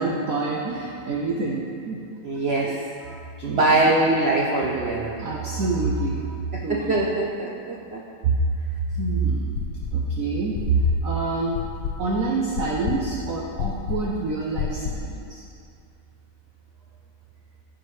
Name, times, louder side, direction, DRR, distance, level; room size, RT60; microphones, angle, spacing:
voice 1, 0.0-2.0 2.6-2.8 3.0-3.8 5.2-7.0 8.2-8.3 8.9-9.6 9.9-11.6 12.0-15.4, right 3 dB, 60° right, -3 dB, 1.0 m, -26 dB
voice 2, 2.2-2.7 3.4-5.2 6.5-8.0, right 2 dB, 90° right, -3 dB, 0.5 m, -22 dB
sound 1, 9.5-10.1 10.5-15.2, left 7 dB, 70° left, 0.8 m, -30 dB
15.0 x 5.1 x 3.2 m, 2.4 s
omnidirectional pair, 2.1 m